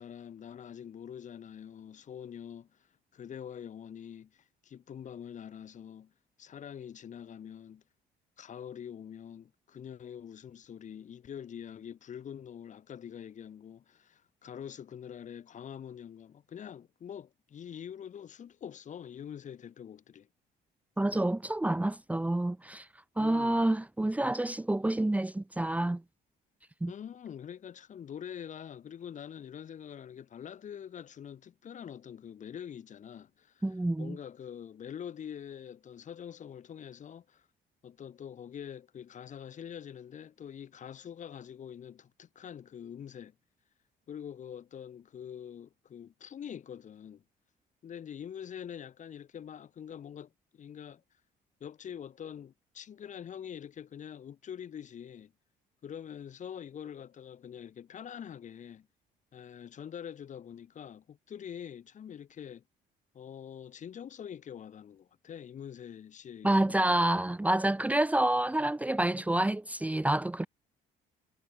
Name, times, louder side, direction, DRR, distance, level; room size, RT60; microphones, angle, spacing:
voice 1, 0.0-2.8 3.1-6.1 6.4-7.8 8.4-20.3 23.2-23.7 26.9-33.7 34.0-37.5 37.8-43.3 44.1-47.2 47.8-51.0 51.6-55.3 55.8-58.9 59.3-62.6 63.1-67.0, left 8 dB, 45° left, 3.1 m, -45 dB
voice 2, 21.0-22.9 23.2-26.0 26.8-26.9 33.6-34.2 66.4-70.5, right 1 dB, 10° right, 1.3 m, -28 dB
cardioid pair, 110°, 17 cm